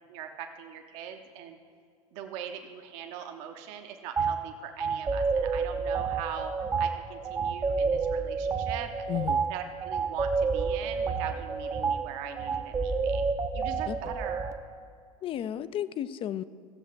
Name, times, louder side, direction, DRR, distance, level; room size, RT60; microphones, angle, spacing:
voice 1, 0.1-1.6 2.1-6.5 6.8-9.1 9.5-13.2 13.5-14.6, right 8 dB, 55° right, 4 dB, 0.9 m, -41 dB
sound 1, 4.2-4.3 4.8-14.5, right 5 dB, 15° right, 0.6 m, -29 dB
voice 2, 9.1-9.4 13.9-14.0 15.2-16.4, left 11 dB, 30° left, 15 dB, 0.4 m, -33 dB
15.0 x 7.2 x 4.5 m, 2.3 s
figure-of-eight pair, 80°, 18 cm